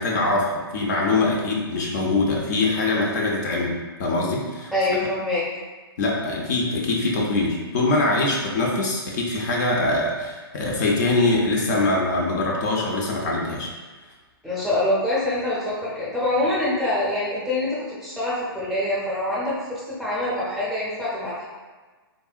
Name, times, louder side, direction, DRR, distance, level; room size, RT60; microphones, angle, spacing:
voice 1, 0.0-4.7 6.0-13.7, left 2 dB, 45° left, -2 dB, 0.5 m, -23 dB
voice 2, 4.7-5.5 14.4-21.4, left 1 dB, ahead, -9 dB, 0.6 m, -25 dB
3.6 x 2.1 x 2.4 m, 1.3 s
hypercardioid pair, 150°, 13 cm